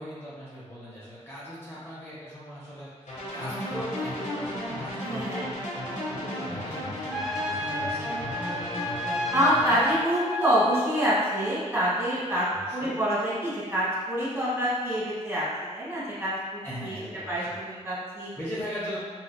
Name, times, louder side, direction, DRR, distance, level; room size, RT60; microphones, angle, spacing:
voice 1, 0.0-5.5 5.9-9.1 12.5-13.0 16.6-17.6 18.4-19.0, equal, 20° left, -10 dB, 0.9 m, -40 dB
sound 1, 3.1-9.9, left 1 dB, 80° left, 0.9 m, -34 dB
voice 2, 5.0-5.5 9.3-12.5 12.7-15.5 15.7-17.0 17.3-18.3, equal, 20° right, -10 dB, 1.5 m, -26 dB
Trumpet, 7.1-11.5, left 1 dB, ahead, 0.4 m, -32 dB
3.9 x 2.3 x 2.2 m, 1.5 s
wide cardioid pair, 65°, 13 cm